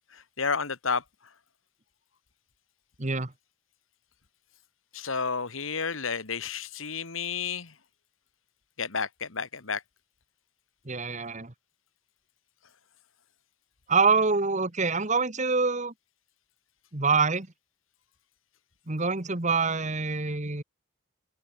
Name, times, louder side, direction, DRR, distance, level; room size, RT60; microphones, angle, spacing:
voice 1, 0.1-1.0 4.9-7.7 8.8-9.8, left 5 dB, 85° left, 2.1 m, -31 dB
voice 2, 3.0-3.3 10.8-11.5 13.9-15.9 16.9-17.5 18.9-20.6, right 4 dB, 35° right, 1.5 m, -25 dB
open air
head